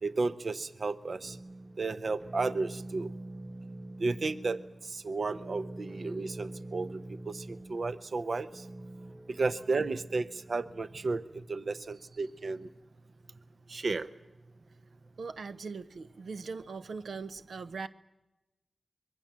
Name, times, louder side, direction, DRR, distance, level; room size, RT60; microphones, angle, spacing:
voice 1, 0.0-1.4 1.8-3.1 4.0-7.0 7.3-8.6 9.3-12.7 13.7-14.1, right 3 dB, 55° right, 14 dB, 0.8 m, -33 dB
sound 1, 1.2-11.1, right 1 dB, 15° right, 1.3 m, -46 dB
voice 2, 15.2-17.9, right 4 dB, 85° right, 11 dB, 0.8 m, -40 dB
25.0 x 22.0 x 7.4 m, 0.98 s
wide cardioid pair, 90°, 0 cm